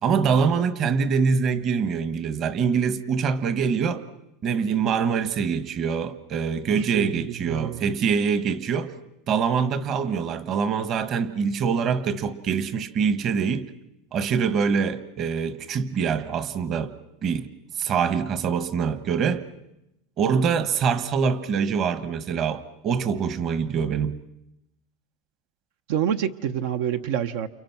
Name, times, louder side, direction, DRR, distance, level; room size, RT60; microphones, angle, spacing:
voice 1, 0.0-4.0 4.4-8.9 9.3-13.7 14.1-16.9 17.2-17.5 17.8-19.4 20.2-24.2, right 6 dB, 35° right, 1.3 m, -24 dB
voice 2, 6.8-7.9 25.9-27.5, right 9 dB, 70° right, 1.0 m, -27 dB
29.5 x 29.0 x 6.0 m
supercardioid pair, 155°, 0 cm